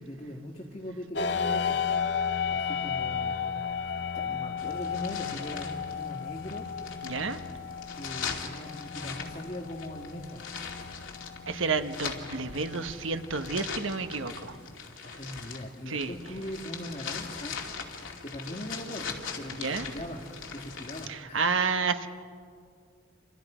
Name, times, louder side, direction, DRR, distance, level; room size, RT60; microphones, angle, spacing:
voice 1, 0.0-1.9 2.5-6.7 7.9-10.4 14.9-17.5 18.2-20.2 20.5-21.4, left 1 dB, 35° left, 1 dB, 1.9 m, -40 dB
sound 1, 1.2-14.8, left 6 dB, 60° left, 1.0 m, -34 dB
sound 2, 4.6-21.1, left 6 dB, 85° left, 2.5 m, -41 dB
voice 2, 7.0-7.4 11.5-14.6 15.9-16.1 19.6-19.9 21.1-22.1, right 4 dB, 85° right, 9 dB, 1.3 m, -30 dB
28.5 x 26.0 x 5.1 m, 2.2 s
head